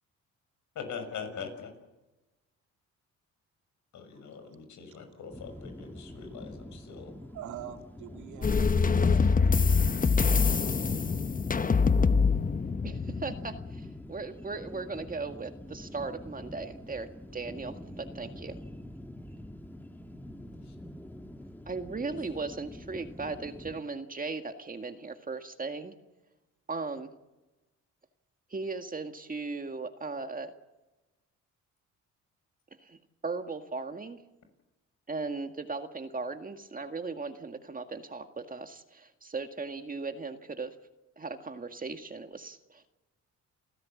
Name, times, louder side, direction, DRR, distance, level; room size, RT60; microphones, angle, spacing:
voice 1, 0.8-1.7 3.9-7.1 20.7-20.8, left 6 dB, 70° left, 6.7 m, -42 dB
voice 2, 4.1-4.6 4.9-5.2 5.8-11.2, right 10 dB, 75° right, 2.7 m, -48 dB
sound 1, 5.3-23.8, left 1 dB, 5° left, 1.5 m, -45 dB
sound 2, 8.4-13.9, left 5 dB, 30° left, 1.0 m, -25 dB
voice 3, 12.8-18.6 21.7-25.9 26.7-27.1 28.5-30.5 32.8-33.0 33.2-34.2 35.1-40.8 41.2-42.8, right 3 dB, 30° right, 1.9 m, -37 dB
29.0 x 15.5 x 8.5 m
cardioid pair, 90°, 30 cm